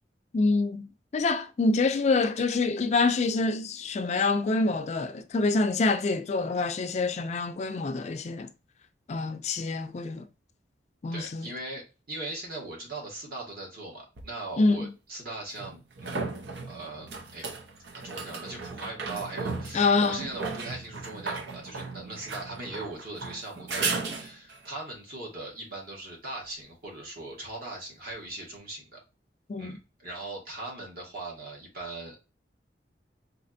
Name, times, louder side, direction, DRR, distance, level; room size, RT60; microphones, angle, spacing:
voice 1, 0.3-8.5 9.1-10.2 11.0-11.5 14.6-14.9 19.7-20.2 29.5-29.8, left 3 dB, 40° left, 0.3 m, -26 dB
voice 2, 11.1-17.5 17.9-29.0 29.6-32.2, right 2 dB, 55° right, 1.6 m, -40 dB
sound 1, 14.2-14.3 15.6-24.7 28.1-28.2, right 4 dB, 85° right, 0.7 m, -36 dB
4.1 x 2.8 x 2.6 m
head